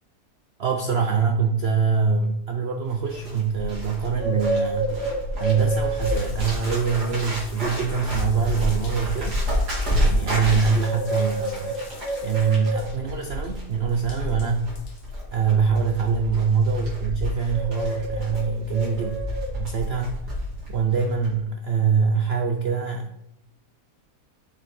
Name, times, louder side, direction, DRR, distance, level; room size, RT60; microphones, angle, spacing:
voice 1, 0.6-5.0 5.4-9.4 10.0-11.8 12.2-14.8 15.3-19.2 19.5-20.2 20.7-23.2, right 5 dB, 55° right, 3 dB, 0.7 m, -24 dB
Bird, 2.9-20.7 21.0-21.3, equal, 75° right, 3.0 m, -28 dB
Water tap faucet / Bathtub (filling or washing) / Drip, 6.0-15.9, left 3 dB, 85° left, 1.7 m, -44 dB
7.2 x 5.4 x 4.4 m, 0.79 s
omnidirectional pair, 1.7 m